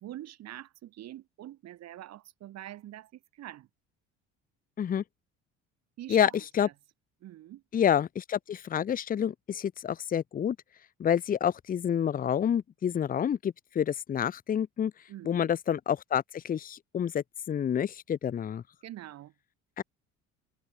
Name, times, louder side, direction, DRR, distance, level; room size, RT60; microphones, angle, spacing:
voice 1, 0.0-3.7 6.0-6.7 7.2-7.6 15.1-15.5 18.8-19.3, right 13 dB, 60° right, 1.5 m, -45 dB
voice 2, 7.7-10.6 11.0-14.9 15.2-18.6 19.8-19.9, left 9 dB, 30° left, 0.6 m, -28 dB
cardioid pair, 95°, 30 cm